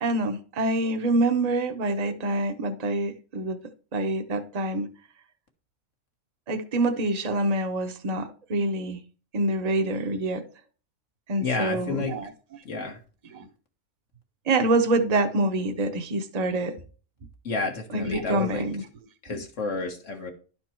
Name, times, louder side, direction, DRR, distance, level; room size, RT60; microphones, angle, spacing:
voice 1, 0.0-3.6 3.9-4.9 6.5-9.0 9.3-10.4 11.3-12.3 13.3-13.4 14.5-16.7 17.9-18.8 19.3-19.4, right 2 dB, 35° right, 0.9 m, -26 dB
voice 2, 11.4-12.2 12.7-13.0 17.4-18.7 19.2-20.3, left 3 dB, 75° left, 1.8 m, -30 dB
11.5 x 4.5 x 4.4 m
omnidirectional pair, 1.3 m